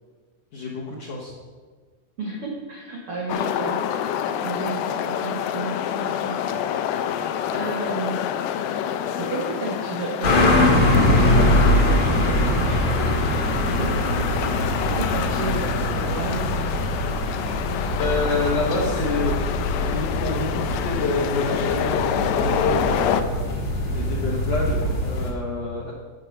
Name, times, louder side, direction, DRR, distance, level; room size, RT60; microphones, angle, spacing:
voice 1, 0.5-1.3 17.4-23.3 23.9-25.9, left 3 dB, 70° left, -5 dB, 1.6 m, -28 dB
voice 2, 2.2-6.7 7.5-8.3 9.1-14.0 14.4-16.9, right 3 dB, 80° right, -1 dB, 1.2 m, -33 dB
sound 1, 3.3-23.2, left 9 dB, 85° left, 2.2 m, -28 dB
sound 2, 10.2-25.3, left 1 dB, 50° left, 2.3 m, -23 dB
8.8 x 7.9 x 6.5 m, 1.5 s
omnidirectional pair, 4.8 m